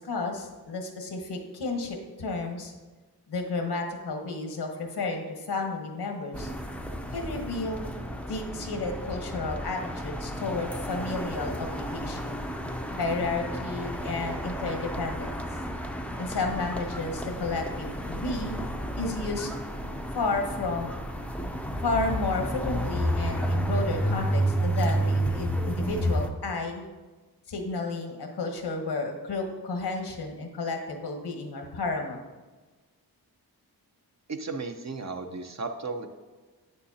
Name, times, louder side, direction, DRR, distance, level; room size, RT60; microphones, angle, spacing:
voice 1, 0.0-2.7 3.3-6.5 7.1-7.9 8.3-12.4 13.0-15.4 16.2-18.5 19.0-19.5 20.1-20.9 21.8-26.8 27.5-32.2, left 3 dB, 80° left, 3 dB, 1.2 m, -32 dB
sound 1, 6.3-26.3, right 1 dB, 5° left, 0.5 m, -31 dB
voice 2, 34.3-36.1, right 3 dB, 45° right, 6 dB, 0.7 m, -34 dB
8.1 x 6.9 x 2.8 m, 1.3 s
wide cardioid pair, 80°, 39 cm